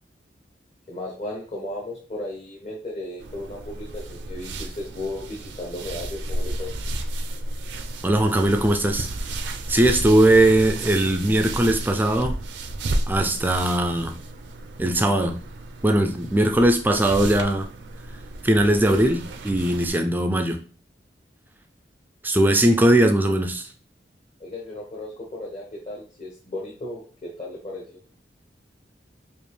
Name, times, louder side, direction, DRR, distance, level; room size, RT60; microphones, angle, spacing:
voice 1, 0.9-6.7 24.4-27.8, left 1 dB, 40° left, 0.9 m, -35 dB
sound 1, 3.2-19.9, right 1 dB, 80° right, 0.5 m, -33 dB
voice 2, 8.0-9.1 9.7-12.4 13.1-14.2 14.8-15.4 15.8-17.7 18.4-20.6 22.2-23.7, right 1 dB, 10° right, 0.3 m, -20 dB
5.0 x 2.4 x 3.2 m
head